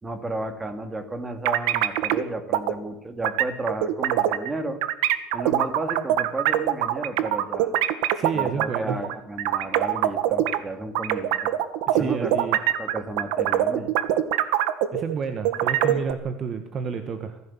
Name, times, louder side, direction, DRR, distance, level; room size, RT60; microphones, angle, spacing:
voice 1, 0.0-4.8 5.3-7.7 8.3-11.5 11.9-12.3 12.8-13.9, right 2 dB, 15° right, 8 dB, 2.2 m, -33 dB
sound 1, 1.5-2.2 2.5-2.7 3.2-4.5 4.8-10.6 11.0-15.2 15.5-16.1, right 12 dB, 85° right, 1.6 m, -23 dB
voice 2, 8.1-9.1 11.9-12.6 14.9-17.4, right 6 dB, 30° right, 8 dB, 1.4 m, -30 dB
24.0 x 15.5 x 7.2 m, 0.86 s
cardioid pair, 160°, 0 cm